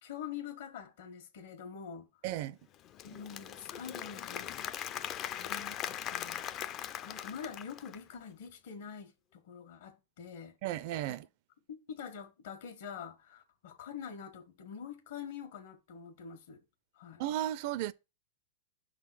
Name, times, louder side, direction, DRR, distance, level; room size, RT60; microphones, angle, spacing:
voice 1, 0.0-2.1 3.0-4.6 4.9-6.5 7.0-10.6 11.1-11.2 11.7-16.6 16.9-17.2, left 7 dB, 70° left, 1.5 m, -45 dB
voice 2, 2.2-2.6 10.6-11.3 17.2-17.9, right 13 dB, 50° right, 0.4 m, -34 dB
Applause / Crowd, 2.7-8.1, left 10 dB, 30° left, 0.4 m, -40 dB
6.0 x 3.8 x 6.0 m
hypercardioid pair, 140°, 0 cm